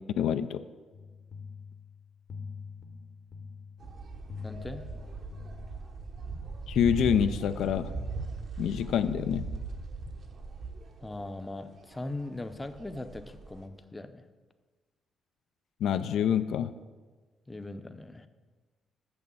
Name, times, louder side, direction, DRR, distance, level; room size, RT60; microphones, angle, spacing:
voice 1, 0.2-0.6 6.7-7.9 8.6-9.5 15.8-16.7, left 9 dB, 80° left, 10 dB, 0.3 m, -26 dB
sound 1, 0.9-6.2, left 5 dB, 55° left, 0.9 m, -45 dB
sound 2, 3.8-13.7, right 4 dB, 50° right, 0.9 m, -39 dB
voice 2, 4.4-4.8 11.0-14.2 17.5-18.3, left 2 dB, 15° left, 9 dB, 0.6 m, -40 dB
6.4 x 6.2 x 7.1 m, 1.4 s
cardioid pair, 90°, 0 cm